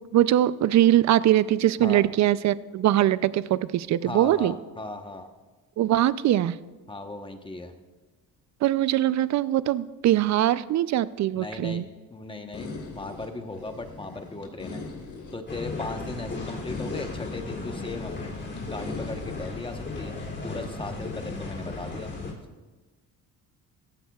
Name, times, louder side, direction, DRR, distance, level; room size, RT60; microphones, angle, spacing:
voice 1, 0.1-4.5 5.8-6.6 8.6-11.8, right 13 dB, 50° right, 17 dB, 0.5 m, -22 dB
voice 2, 4.0-5.3 6.9-7.7 11.3-14.8 15.3-18.3 18.6-22.1, left 2 dB, 15° left, 6 dB, 1.0 m, -37 dB
sound 1, 12.5-20.7, left 3 dB, 55° left, 3.5 m, -41 dB
sound 2, 15.5-22.3, left 3 dB, 30° left, 2.9 m, -35 dB
17.0 x 14.5 x 2.4 m, 1.3 s
cardioid pair, 115°, 35 cm